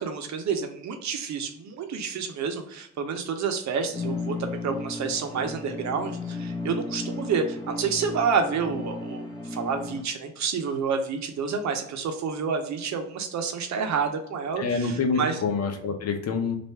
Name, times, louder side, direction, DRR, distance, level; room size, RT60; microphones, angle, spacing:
voice 1, 0.0-15.4, right 5 dB, 65° right, 6 dB, 0.8 m, -29 dB
sound 1, 3.9-10.0, left 2 dB, 15° left, 1.0 m, -34 dB
voice 2, 14.6-16.6, left 4 dB, 55° left, 5 dB, 0.9 m, -27 dB
3.3 x 2.5 x 4.4 m, 0.73 s
cardioid pair, 90°, 30 cm